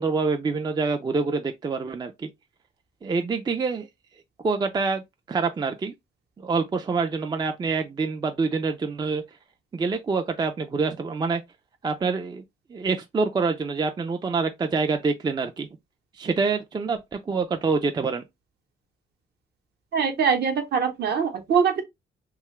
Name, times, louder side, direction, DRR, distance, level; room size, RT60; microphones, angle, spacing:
voice 1, 0.0-2.3 3.0-3.9 4.4-5.0 5.3-5.9 6.4-9.2 9.7-11.4 11.8-12.4 12.7-15.7 16.2-18.2, right 4 dB, 20° right, 0.4 m, -26 dB
voice 2, 19.9-21.8, right 6 dB, 55° right, 0.9 m, -23 dB
2.7 x 2.3 x 3.0 m
cardioid pair, 90°, 20 cm